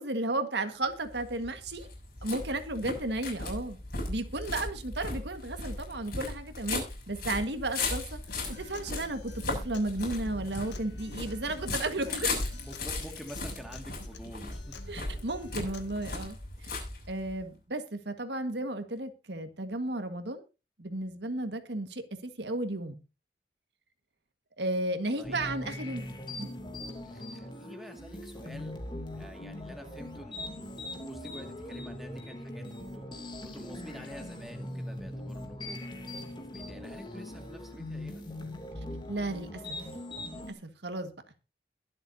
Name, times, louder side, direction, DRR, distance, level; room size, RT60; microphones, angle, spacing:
voice 1, 0.0-1.9 2.2-3.8 4.1-8.2 8.5-12.3 14.9-16.4 16.6-20.4 20.8-23.0 24.6-26.0 26.4-26.5 39.1-39.6 40.2-41.1, right 2 dB, 75° right, 1.7 m, -34 dB
sound 1, 0.9-17.4, left 3 dB, 55° left, 6.9 m, -37 dB
Acoustic guitar, 8.3-16.3, left 3 dB, 80° left, 2.0 m, -50 dB
voice 2, 12.0-14.8 25.2-25.5 27.0-28.7 29.1-33.1 33.4-35.8 36.2-38.2, equal, ahead, 2.1 m, -48 dB
sound 2, 25.2-40.5, left 1 dB, 25° left, 2.6 m, -41 dB
22.0 x 7.9 x 2.8 m
head